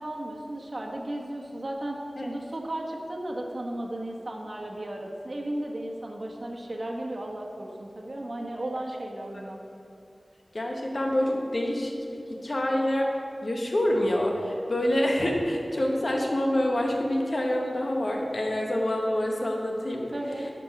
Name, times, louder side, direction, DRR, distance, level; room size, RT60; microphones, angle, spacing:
voice 1, 0.0-9.6 20.1-20.5, right 1 dB, 55° right, 0 dB, 1.2 m, -35 dB
voice 2, 10.5-11.9 12.4-13.1 13.4-20.1, left 1 dB, 55° left, 0 dB, 1.4 m, -26 dB
10.5 x 5.3 x 5.9 m, 2.6 s
wide cardioid pair, 55°, 0 cm